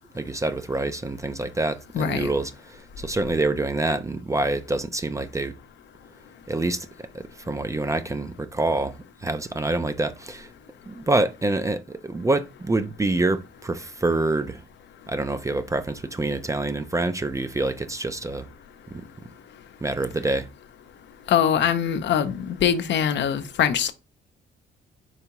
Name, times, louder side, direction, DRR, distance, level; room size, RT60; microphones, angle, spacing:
voice 1, 0.1-5.5 6.5-6.9 7.1-10.5 10.9-14.6 15.1-18.5 18.9-19.0 19.8-20.5, right 2 dB, 15° right, 0.4 m, -26 dB
voice 2, 1.9-2.3 21.3-23.9, left 8 dB, 65° left, 0.6 m, -23 dB
4.7 x 3.4 x 2.9 m
cardioid pair, 90°, 20 cm